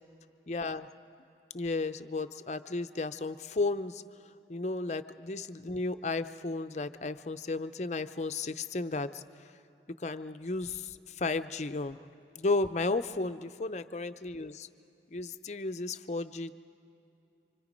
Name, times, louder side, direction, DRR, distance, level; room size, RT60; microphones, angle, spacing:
voice 1, 0.5-0.9 1.5-4.0 4.5-9.2 10.0-12.0 12.4-14.7 15.1-16.5, left 3 dB, 40° left, 10 dB, 0.6 m, -33 dB
28.0 x 25.5 x 5.2 m, 2.7 s
head